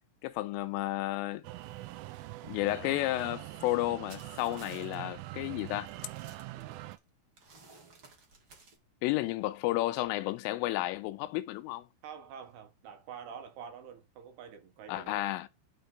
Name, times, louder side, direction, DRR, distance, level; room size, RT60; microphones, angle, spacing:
voice 1, 0.2-1.4 2.4-5.9 9.0-11.9 14.9-15.5, left 17 dB, 85° left, 3.2 m, -32 dB
sound 1, 1.4-7.0, right 17 dB, 90° right, 3.3 m, -44 dB
sound 2, 4.1-5.0 5.4-5.5 5.9-7.0 7.4-8.8, right 4 dB, 50° right, 1.5 m, -55 dB
voice 2, 12.0-15.3, right 7 dB, 65° right, 3.0 m, -47 dB
12.5 x 4.4 x 4.0 m
omnidirectional pair, 5.7 m